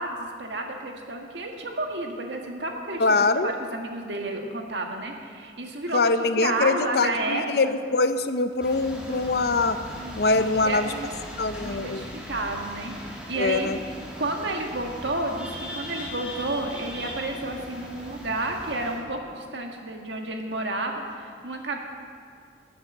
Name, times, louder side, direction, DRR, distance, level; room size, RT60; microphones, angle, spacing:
voice 1, 0.0-7.7 10.0-11.2 11.6-13.8 14.2-21.8, right 2 dB, 80° right, 2 dB, 1.6 m, -31 dB
voice 2, 3.0-3.5 5.9-9.8 10.2-10.9 11.4-12.1 13.3-13.8, left 3 dB, 60° left, 10 dB, 0.6 m, -23 dB
sound 1, 8.6-19.0, equal, 5° right, 2.0 m, -39 dB
13.0 x 8.0 x 7.6 m, 2.2 s
head